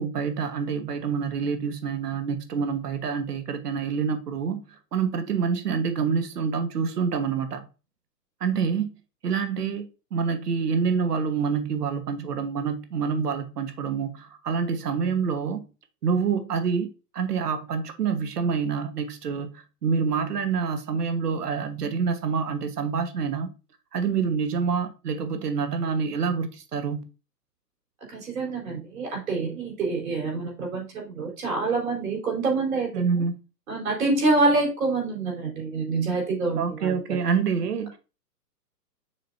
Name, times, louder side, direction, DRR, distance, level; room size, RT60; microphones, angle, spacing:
voice 1, 0.0-4.6 4.9-7.6 8.4-8.9 9.2-9.9 10.1-15.6 16.0-23.5 23.9-27.0 32.9-33.4 36.6-38.0, right 6 dB, 70° right, 1.5 m, -27 dB
voice 2, 28.1-33.1 33.7-37.0, right 3 dB, 55° right, 4.1 m, -26 dB
7.6 x 5.1 x 2.7 m
hypercardioid pair, 165°, 49 cm